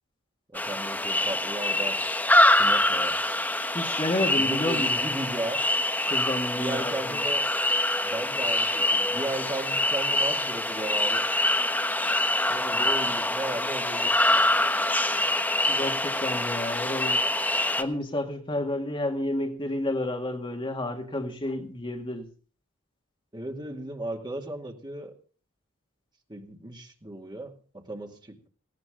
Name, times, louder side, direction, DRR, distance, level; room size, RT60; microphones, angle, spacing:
sound 1, 0.5-17.8, left 1 dB, 10° left, 1.2 m, -25 dB
voice 1, 0.5-2.0 2.6-3.2 4.1-5.6 6.5-7.4 8.0-11.3 12.5-14.5 23.3-25.1 26.3-28.5, right 2 dB, 20° right, 2.4 m, -35 dB
voice 2, 3.7-4.9 6.0-7.2 15.7-17.2 17.8-22.3, left 1 dB, 25° left, 2.2 m, -30 dB
18.5 x 17.5 x 3.8 m
head